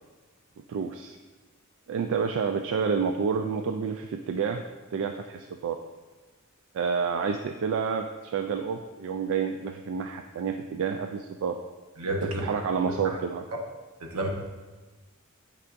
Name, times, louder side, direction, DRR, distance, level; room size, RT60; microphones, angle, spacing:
voice 1, 0.7-1.2 1.9-4.7 4.9-5.8 6.7-11.6 12.2-13.4, right 6 dB, 65° right, 6 dB, 0.3 m, -29 dB
voice 2, 12.0-12.4 12.8-12.9 14.0-14.3, right 1 dB, 80° right, 1 dB, 1.0 m, -30 dB
8.3 x 4.8 x 2.5 m, 1.3 s
head